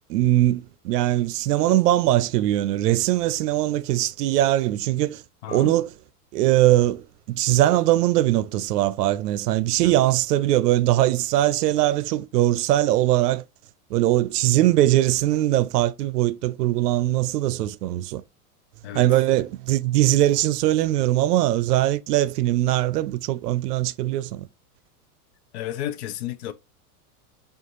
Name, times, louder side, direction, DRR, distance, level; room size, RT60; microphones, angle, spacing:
voice 1, 0.1-5.2 5.5-5.9 6.3-7.0 7.3-13.4 13.9-18.2 18.9-24.5, right 14 dB, 90° right, 0.6 m, -21 dB
voice 2, 5.4-5.9 9.8-10.0 18.8-19.1 25.5-26.5, left 12 dB, 50° left, 0.4 m, -32 dB
5.0 x 2.5 x 2.9 m
supercardioid pair, 155°, 46 cm